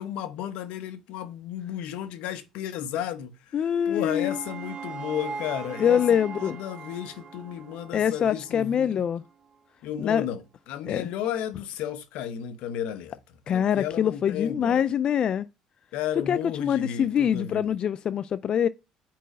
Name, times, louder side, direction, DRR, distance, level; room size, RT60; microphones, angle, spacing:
voice 1, 0.0-9.0 9.8-13.2 13.5-14.9 15.9-17.7, left 10 dB, 75° left, 0.8 m, -33 dB
voice 2, 3.5-4.4 5.8-6.6 7.9-9.2 10.0-10.2 10.9-11.0 13.5-15.5 16.3-18.7, left 8 dB, 45° left, 0.3 m, -24 dB
sound 1, 3.6-8.8, right 5 dB, 50° right, 1.8 m, -40 dB
5.0 x 4.6 x 6.0 m
supercardioid pair, 95°, 2 cm